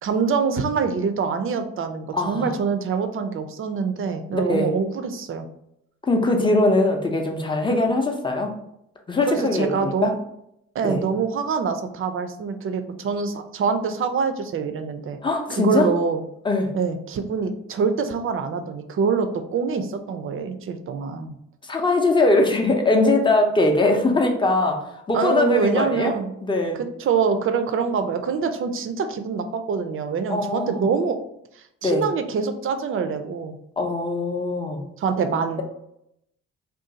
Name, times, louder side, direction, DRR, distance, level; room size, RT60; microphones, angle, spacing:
voice 1, 0.0-5.5 9.3-10.2 10.7-15.2 15.5-16.2 16.7-21.3 25.1-26.3 27.0-31.2 31.6-33.5 35.0-35.6, right 5 dB, 45° right, 8 dB, 0.4 m, -25 dB
voice 2, 2.1-2.5 4.3-4.7 6.0-8.5 9.1-10.1 10.8-11.0 15.2-15.9 16.4-16.7 21.6-26.1 26.4-26.8 30.3-30.8 31.8-32.0 33.8-34.8, left 2 dB, 15° left, 2 dB, 0.6 m, -21 dB
2.5 x 2.3 x 3.8 m, 0.79 s
cardioid pair, 90°, 30 cm